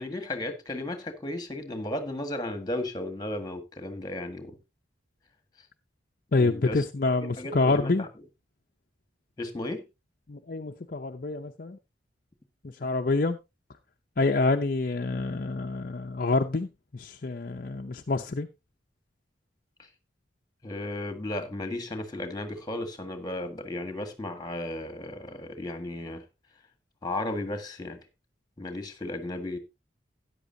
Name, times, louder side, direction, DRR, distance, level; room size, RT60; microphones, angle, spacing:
voice 1, 0.0-4.6 6.4-6.8 7.2-8.1 9.4-9.8 20.6-26.2 27.0-28.0 28.6-29.6, left 1 dB, 20° left, 1.6 m, -34 dB
voice 2, 6.3-8.1 10.3-11.8 12.8-13.4 14.2-16.7 16.9-18.5, left 3 dB, 50° left, 0.6 m, -27 dB
13.5 x 9.8 x 2.7 m
head